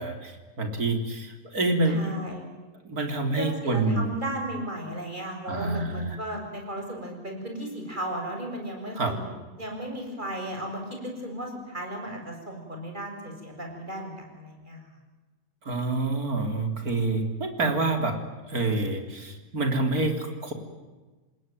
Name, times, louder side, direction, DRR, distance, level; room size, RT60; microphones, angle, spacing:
voice 1, 0.0-2.1 2.8-4.1 5.5-6.2 9.0-9.2 15.6-18.2 18.5-20.5, right 2 dB, 80° right, 6 dB, 4.2 m, -27 dB
voice 2, 1.9-2.4 3.3-9.3 9.6-14.9, right 1 dB, 30° right, 1 dB, 7.4 m, -35 dB
27.5 x 20.5 x 9.3 m, 1.3 s
omnidirectional pair, 1.5 m